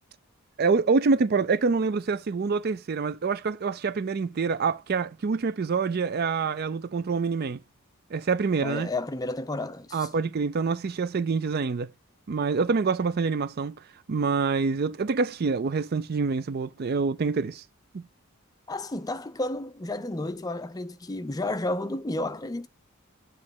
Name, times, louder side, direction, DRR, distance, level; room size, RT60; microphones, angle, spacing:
voice 1, 0.6-7.6 8.1-8.9 9.9-11.9 12.3-13.8 14.1-17.6 17.9-18.0, right 4 dB, 45° right, 0.4 m, -26 dB
voice 2, 8.6-10.1 18.7-22.7, left 2 dB, 15° left, 0.5 m, -32 dB
7.5 x 3.2 x 5.9 m
head